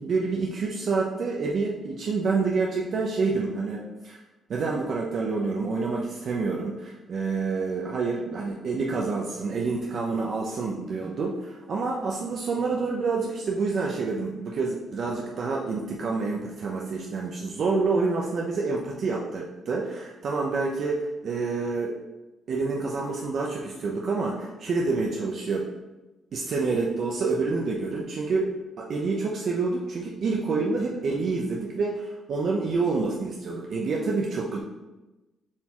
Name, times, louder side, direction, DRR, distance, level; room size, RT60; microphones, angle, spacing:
voice 1, 0.0-4.2 4.5-21.9 22.5-25.7 26.3-28.5 28.8-34.6, right 4 dB, 60° right, -2 dB, 0.8 m, -28 dB
7.4 x 4.3 x 3.0 m, 1.1 s
cardioid pair, 90°, 0 cm